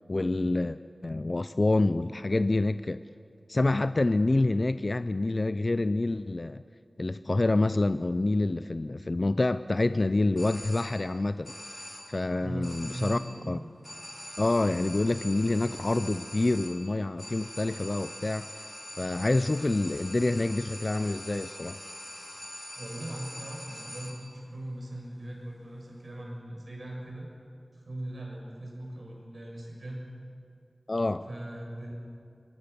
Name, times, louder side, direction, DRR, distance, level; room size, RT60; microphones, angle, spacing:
voice 1, 0.1-3.0 3.5-6.6 7.0-11.5 12.1-13.2 13.5-13.6 14.4-18.5 19.0-21.8 30.9-31.3, left 2 dB, 50° left, 12 dB, 0.5 m, -27 dB
sound 1, 10.4-11.2 11.4-12.3 12.6-13.5 13.8-24.4, left 1 dB, 20° left, 4.6 m, -43 dB
voice 2, 12.4-13.7 22.8-27.3 27.7-30.0 31.3-31.9, right 1 dB, 70° right, -2 dB, 6.5 m, -39 dB
24.5 x 20.0 x 6.8 m, 2.4 s
wide cardioid pair, 50°, 0 cm